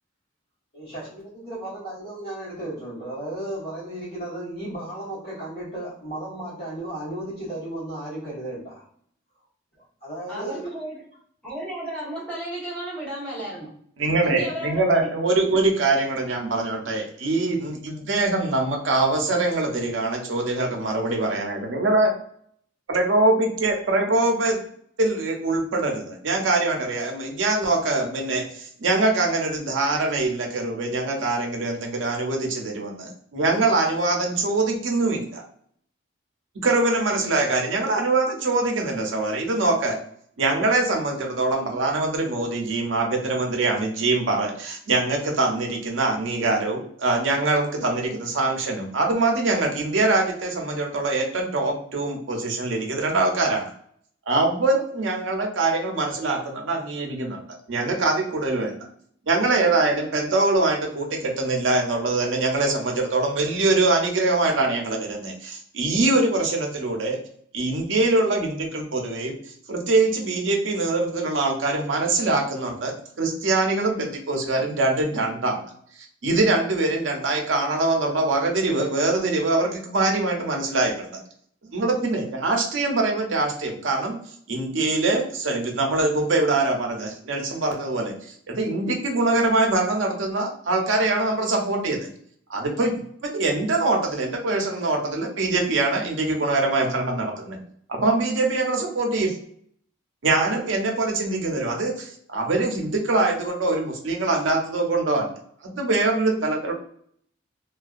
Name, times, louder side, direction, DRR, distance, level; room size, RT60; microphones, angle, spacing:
voice 1, 0.7-8.9 10.0-10.7, right 1 dB, 50° left, -11 dB, 1.2 m, -34 dB
voice 2, 10.3-11.0 11.4-13.7 14.2-15.1 15.4-15.6, right 1 dB, 5° left, -10 dB, 1.0 m, -33 dB
voice 3, 14.0-22.1 22.9-24.6 25.0-35.4 36.6-40.0 40.4-53.7 54.3-57.4 57.7-58.8 59.3-67.2 67.5-69.3 69.7-75.6 76.2-81.1 81.7-84.2 84.5-88.1 88.5-92.1 92.5-97.6 97.9-99.4 100.2-105.3 105.6-106.7, right 2 dB, 75° right, 1 dB, 0.6 m, -23 dB
2.5 x 2.2 x 2.3 m, 0.63 s
head